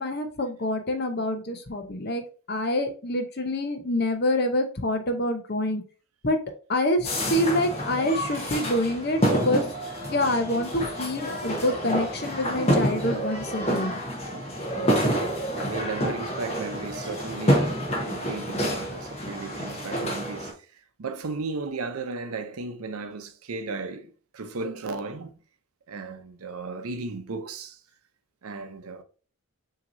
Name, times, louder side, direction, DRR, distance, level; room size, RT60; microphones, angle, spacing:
voice 1, 0.0-2.2 2.5-5.8 6.2-6.4 6.7-9.6 10.1-14.0, left 1 dB, 45° left, 0.7 m, -26 dB
sound 1, 7.0-20.5, equal, 30° left, 1.0 m, -28 dB
voice 2, 14.7-25.3 25.9-27.8 28.4-29.0, right 3 dB, 80° right, 0.6 m, -35 dB
5.8 x 2.9 x 2.6 m
head